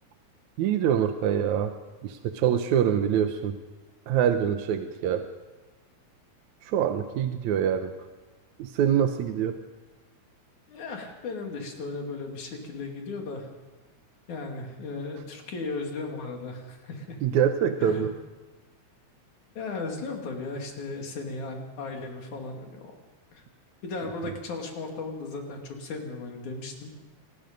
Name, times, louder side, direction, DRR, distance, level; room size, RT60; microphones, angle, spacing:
voice 1, 0.6-1.7 2.0-3.6 4.1-5.2 6.6-7.9 8.6-9.6 17.2-18.1, right 9 dB, 80° right, 7 dB, 2.3 m, -25 dB
voice 2, 10.7-13.5 14.3-17.2 17.8-18.1 19.6-23.0 23.3-23.4 23.8-26.9, left 3 dB, 80° left, 2 dB, 4.1 m, -36 dB
27.0 x 19.5 x 5.3 m, 1.2 s
omnidirectional pair, 3.3 m